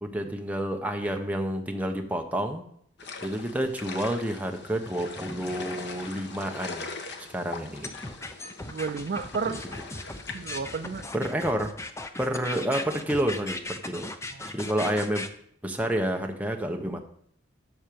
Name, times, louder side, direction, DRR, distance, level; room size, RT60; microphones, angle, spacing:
voice 1, 0.0-2.6 3.2-6.9 7.3-7.9 9.5-9.6 11.1-11.7 12.2-14.1 14.5-15.3 15.6-17.0, right 1 dB, 10° right, 3 dB, 1.1 m, -29 dB
sound 1, 3.0-11.0, left 3 dB, 65° left, 1.2 m, -41 dB
sound 2, 7.8-15.3, left 2 dB, 15° left, 0.8 m, -37 dB
voice 2, 8.6-9.6 10.3-11.1 14.3-14.4 14.9-15.0, right 5 dB, 55° right, 10 dB, 0.4 m, -32 dB
12.5 x 4.4 x 7.0 m, 0.66 s
head